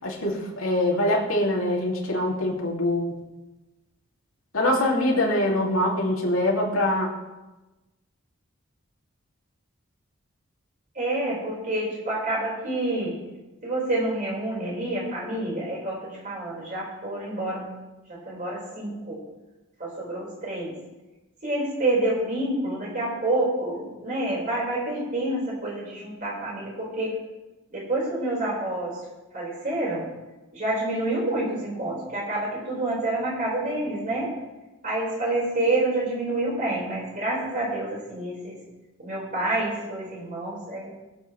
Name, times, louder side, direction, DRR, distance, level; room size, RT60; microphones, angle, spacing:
voice 1, 0.0-3.1 4.5-7.1, left 1 dB, 90° left, -2 dB, 2.7 m, -24 dB
voice 2, 10.9-13.1 13.6-17.7 18.1-19.2 19.8-20.7 21.4-27.1 27.7-29.0 29.3-30.0 30.5-34.3 34.8-38.6 39.0-40.9, right 2 dB, 40° right, -5 dB, 4.8 m, -28 dB
20.5 x 7.8 x 3.3 m, 1.1 s
head